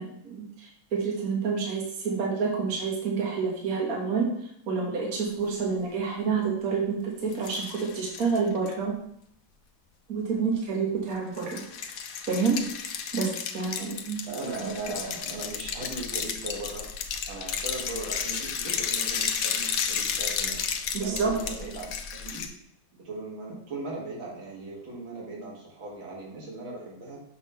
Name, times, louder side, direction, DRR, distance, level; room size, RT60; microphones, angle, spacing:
voice 1, 0.0-4.3 4.7-9.0 10.1-12.0 12.3-12.6 12.8-14.2 20.9-21.3, right 5 dB, 50° right, -2 dB, 1.6 m, -28 dB
sound 1, 7.3-8.7 11.3-22.5, left 7 dB, 80° left, 0.7 m, -32 dB
voice 2, 14.2-16.9 17.3-20.6 20.9-22.5 23.0-27.2, right 2 dB, 75° right, -4 dB, 2.6 m, -38 dB
6.5 x 3.7 x 5.4 m, 0.69 s
omnidirectional pair, 2.2 m